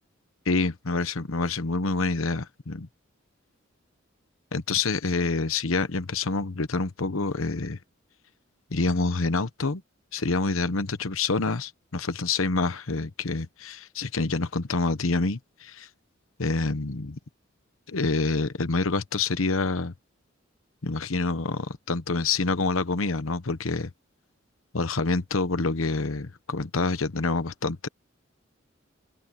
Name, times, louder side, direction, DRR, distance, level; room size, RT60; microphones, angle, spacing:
voice 1, 0.5-2.9 4.5-7.8 8.7-9.8 10.1-15.9 16.4-17.2 17.9-19.9 20.8-23.9 24.7-27.9, left 3 dB, 90° left, 1.1 m, -27 dB
head